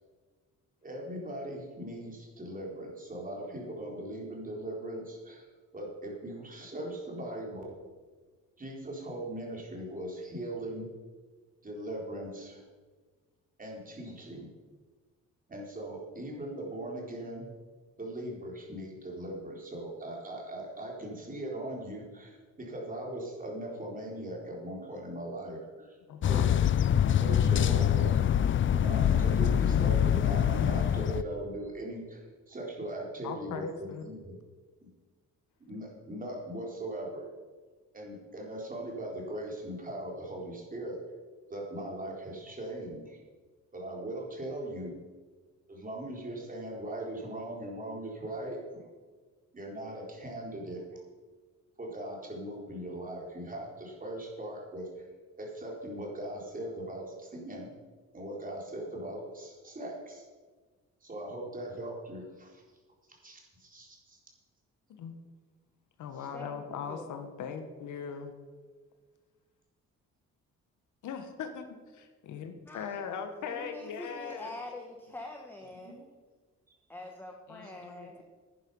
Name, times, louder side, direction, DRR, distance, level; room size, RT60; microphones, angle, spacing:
voice 1, 0.8-5.4 5.7-7.8 8.6-10.9 11.6-12.6 13.6-14.5 15.5-17.5 18.0-26.0 26.3-26.7 27.2-28.2 28.7-34.3 34.8-34.9 35.6-37.3 37.9-41.1 41.5-43.2 43.7-45.0 45.7-48.8 49.5-51.0 51.8-55.1 55.4-57.7 58.1-60.3 61.0-62.6 63.1-64.2 66.2-66.3 75.9-76.0, right 1 dB, 30° right, -2 dB, 4.1 m, -39 dB
voice 2, 26.1-26.5 33.2-34.1 64.9-65.2 66.0-68.3 71.0-74.5 77.5-78.2, left 6 dB, 80° left, 7 dB, 1.5 m, -40 dB
sound 1, 26.2-31.2, left 9 dB, 40° left, 0.5 m, -25 dB
voice 3, 66.3-67.1 72.7-72.9 73.4-76.1 76.9-78.2, left 2 dB, 5° left, 1 dB, 1.3 m, -45 dB
11.0 x 10.0 x 5.5 m, 1.4 s
cardioid pair, 90°, 30 cm